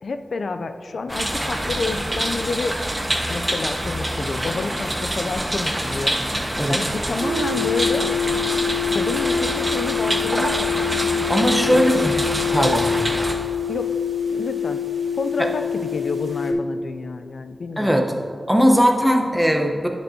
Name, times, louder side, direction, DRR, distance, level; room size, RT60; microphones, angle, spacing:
voice 1, 0.0-2.8 3.3-8.1 8.9-11.0 11.7-12.1 13.7-13.9 14.3-14.8 15.2-17.9, left 3 dB, 80° left, 9 dB, 0.4 m, -29 dB
sound 1, 1.1-13.3, right 1 dB, 25° right, 1.2 m, -26 dB
sound 2, 7.2-16.5, left 7 dB, 75° right, 0.8 m, -25 dB
voice 2, 11.3-12.2 12.5-12.9 15.4-15.5 17.8-18.1 18.5-19.9, equal, ahead, 2 dB, 0.8 m, -19 dB
11.0 x 7.1 x 2.7 m, 2.2 s
wide cardioid pair, 65°, 0 cm